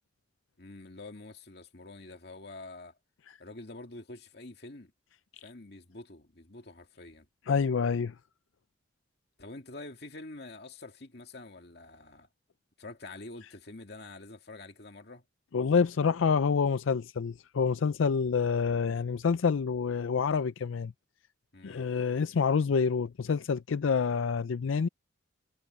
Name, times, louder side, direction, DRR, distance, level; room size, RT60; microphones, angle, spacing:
voice 1, 0.6-2.9 3.4-4.9 5.4-7.3 9.4-12.3 12.8-15.2 21.5-21.9, left 2 dB, 55° left, 2.3 m, -46 dB
voice 2, 7.5-8.1 15.5-20.9 21.6-24.9, left 5 dB, 90° left, 0.5 m, -27 dB
head